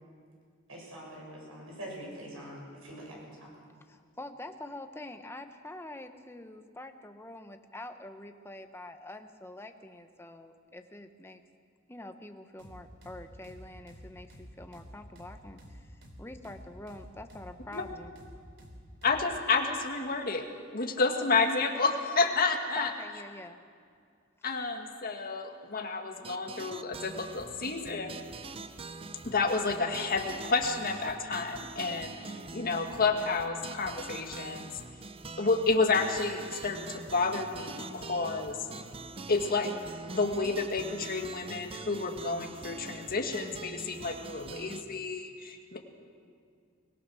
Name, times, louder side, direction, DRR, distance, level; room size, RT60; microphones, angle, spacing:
voice 1, 0.7-3.5, right 1 dB, 85° right, -2 dB, 7.3 m, -44 dB
voice 2, 3.9-11.4 11.9-15.6 16.2-18.1 22.8-23.6, left 1 dB, 10° left, 6 dB, 1.0 m, -45 dB
sound 1, 12.6-19.3, equal, 60° right, 3.2 m, -50 dB
voice 3, 19.0-20.4 20.7-22.9 24.4-28.2 29.2-32.2 32.5-34.7 35.4-38.6 39.3-39.7 40.1-45.8, left 4 dB, 45° left, 3 dB, 1.9 m, -30 dB
sound 2, 26.2-44.8, right 3 dB, 30° right, 0.7 m, -44 dB
23.0 x 18.5 x 6.3 m, 2.2 s
head